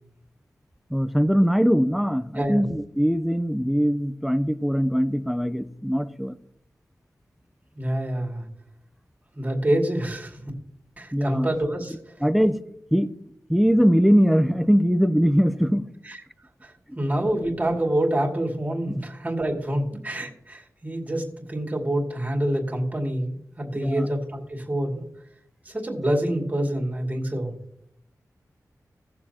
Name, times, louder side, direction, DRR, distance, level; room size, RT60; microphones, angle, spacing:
voice 1, 0.9-6.3 11.1-11.5 12.2-12.6 12.9-13.1 13.5-15.9 18.9-19.0 23.7-24.1, equal, ahead, 12 dB, 0.6 m, -21 dB
voice 2, 7.7-8.4 9.3-10.4 11.0-12.0 16.0-16.2 16.6-25.0 25.6-27.5, right 1 dB, 25° right, 0 dB, 2.4 m, -27 dB
18.0 x 7.3 x 2.9 m, 0.72 s
wide cardioid pair, 105°, 6 cm